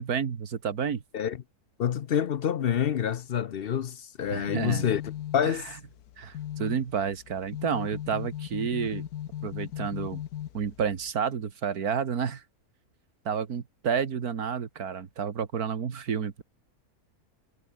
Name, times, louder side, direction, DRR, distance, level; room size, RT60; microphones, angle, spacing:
voice 1, 0.0-1.0 4.3-4.9 5.4-5.7 6.2-9.1 9.4-10.2 10.5-12.4 13.3-16.4, right 7 dB, 80° right, 2.1 m, -30 dB
voice 2, 1.8-5.0 5.3-5.7, left 9 dB, 55° left, 0.7 m, -27 dB
sound 1, 4.2-11.1, left 11 dB, 80° left, 1.3 m, -38 dB
omnidirectional pair, 1.6 m